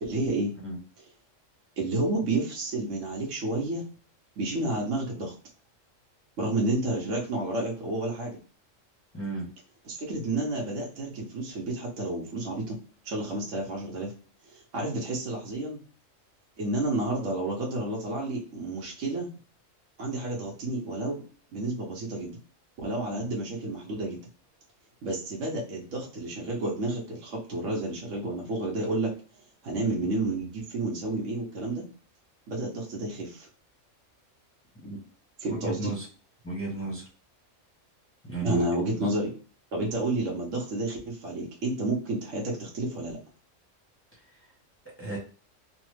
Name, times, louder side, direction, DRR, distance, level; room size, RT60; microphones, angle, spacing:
voice 1, 0.0-0.5 1.0-1.1 1.8-3.8 4.4-5.3 6.4-8.4 9.8-12.8 13.0-14.1 14.5-15.8 16.6-19.3 20.0-21.2 21.5-22.4 22.8-24.2 25.0-29.1 29.6-31.8 32.5-33.5 35.4-35.9 38.4-39.3 39.7-43.2, right 2 dB, 75° right, -2 dB, 1.1 m, -30 dB
voice 2, 9.1-9.5 23.2-23.3 34.8-35.0 35.5-36.0 36.4-37.0 38.2-38.6 45.0-45.2, right 3 dB, 10° left, -4 dB, 0.8 m, -34 dB
3.2 x 2.0 x 3.1 m, 0.40 s
omnidirectional pair, 1.3 m